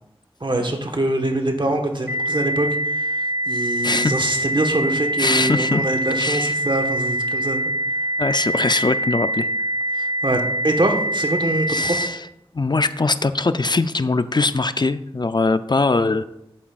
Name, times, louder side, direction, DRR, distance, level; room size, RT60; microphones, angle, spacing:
voice 1, 0.4-3.2 3.5-7.6 10.0-12.0, right 1 dB, 50° right, 3 dB, 1.3 m, -24 dB
sound 1, 2.1-12.1, right 1 dB, 15° right, 1.0 m, -24 dB
voice 2, 5.2-5.8 6.2-6.5 8.2-9.5 11.7-12.2 12.5-16.2, left 3 dB, 45° left, 11 dB, 0.4 m, -21 dB
10.5 x 8.8 x 2.4 m, 0.81 s
wide cardioid pair, 45°, 10 cm